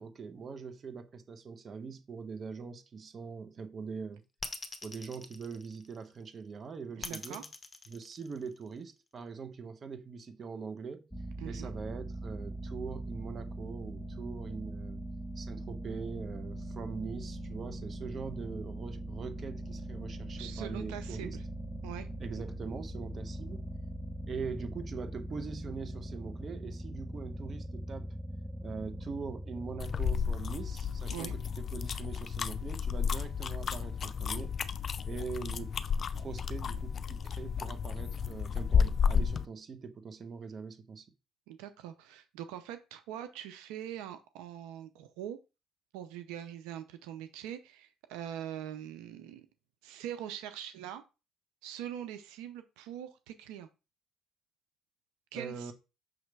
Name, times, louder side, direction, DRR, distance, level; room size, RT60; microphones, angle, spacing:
voice 1, 0.0-4.2 4.8-7.5 7.9-11.1 11.4-15.1 15.4-21.4 22.2-23.7 24.3-28.1 28.6-34.5 35.0-35.8 36.2-41.1 55.3-55.7, right 5 dB, 40° right, 0.9 m, -42 dB
sound 1, 4.4-6.2 7.0-8.8, left 3 dB, 20° left, 1.0 m, -43 dB
voice 2, 7.0-7.4 11.4-11.7 20.4-21.4 21.8-22.1 31.1-31.3 41.5-45.4 45.9-49.5 49.8-51.0 51.6-53.7 55.3-55.7, right 10 dB, 90° right, 0.6 m, -43 dB
sound 2, 11.1-30.7, right 1 dB, ahead, 0.7 m, -41 dB
sound 3, 29.8-39.5, left 6 dB, 40° left, 0.5 m, -32 dB
6.4 x 3.2 x 4.6 m
cardioid pair, 95°, 0 cm